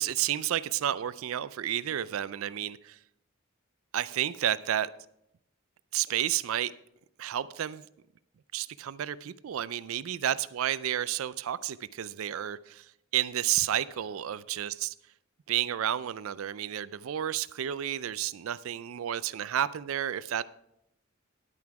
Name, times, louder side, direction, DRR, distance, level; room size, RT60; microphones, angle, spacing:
voice 1, 0.0-3.0 3.9-4.9 5.9-6.7 7.2-7.8 8.5-12.9 13.1-14.9 15.5-20.4, right 11 dB, 75° right, 0.4 m, -31 dB
11.0 x 9.5 x 4.7 m
head